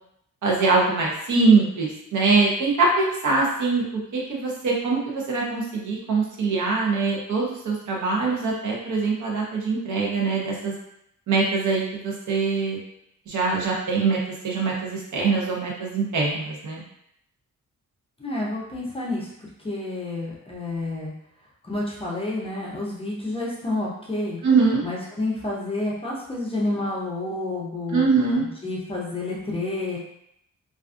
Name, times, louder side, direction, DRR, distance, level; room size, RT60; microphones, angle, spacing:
voice 1, 0.4-3.8 4.1-10.7 11.3-12.8 13.3-14.2 14.4-16.8 24.4-24.8 27.9-28.4, right 4 dB, 65° right, -3 dB, 0.7 m, -23 dB
voice 2, 18.2-19.3 19.6-21.1 21.6-24.4 24.8-28.0 28.4-30.0, left 2 dB, 20° left, -5 dB, 0.4 m, -29 dB
2.4 x 2.3 x 2.4 m, 0.75 s
wide cardioid pair, 175°, 32 cm